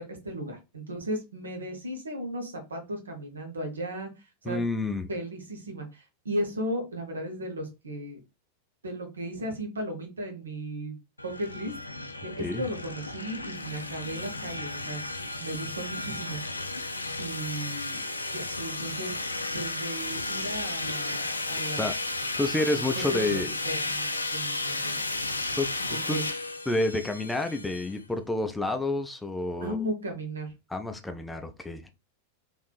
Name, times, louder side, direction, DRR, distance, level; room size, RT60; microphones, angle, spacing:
voice 1, 0.0-4.6 5.1-8.2 8.8-11.0 11.2-11.7 12.4-15.0 15.4-16.4 17.2-18.0 18.3-19.1 19.5-21.8 22.6-25.0 26.1-26.2 29.6-30.5, right 1 dB, 70° right, 3 dB, 0.9 m, -35 dB
voice 2, 4.4-5.1 12.4-12.7 21.7-21.9 22.4-23.5 25.6-26.2 26.7-29.8 30.7-31.9, left 2 dB, 5° left, 6 dB, 0.4 m, -29 dB
sound 1, 11.2-28.0, left 2 dB, 80° left, 0.3 m, -33 dB
3.4 x 2.6 x 2.3 m, 0.26 s
figure-of-eight pair, 90°, 0 cm